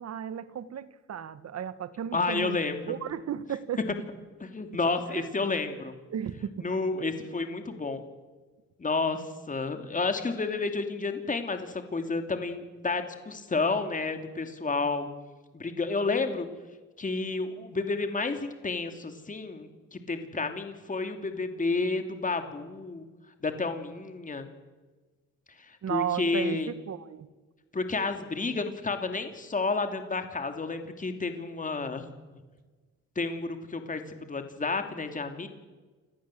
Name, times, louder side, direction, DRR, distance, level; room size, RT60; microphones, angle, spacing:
voice 1, 0.0-2.6 2.9-3.8 5.1-5.3 6.1-6.7 25.8-27.3, right 9 dB, 55° right, 14 dB, 1.7 m, -34 dB
voice 2, 2.1-2.9 4.4-5.9 6.6-8.0 8.8-15.1 15.5-16.5 17.0-23.0 23.4-24.5 25.7-26.7 27.7-32.0 33.2-35.5, left 3 dB, 25° left, 6 dB, 2.8 m, -31 dB
28.5 x 18.5 x 7.8 m, 1.3 s
cardioid pair, 90°, 30 cm